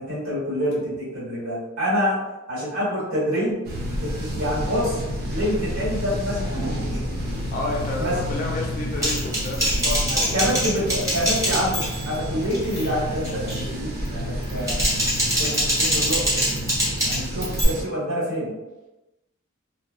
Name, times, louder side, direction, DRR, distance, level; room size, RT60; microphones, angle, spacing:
voice 1, 0.0-2.2 2.5-3.6 4.0-5.0 5.3-7.0 8.0-8.2 10.1-14.8 15.4-16.4 17.0-18.6, equal, 80° right, -10 dB, 1.3 m, -27 dB
sound 1, 3.6-17.8, equal, 50° right, 0.5 m, -30 dB
voice 2, 7.5-10.3, left 2 dB, 40° left, 0 dB, 0.5 m, -30 dB
Typing, 9.0-12.2 12.5-12.9 13.2-13.6 14.4-17.6, equal, 15° right, 0.7 m, -24 dB
2.3 x 2.2 x 2.4 m, 1.0 s
head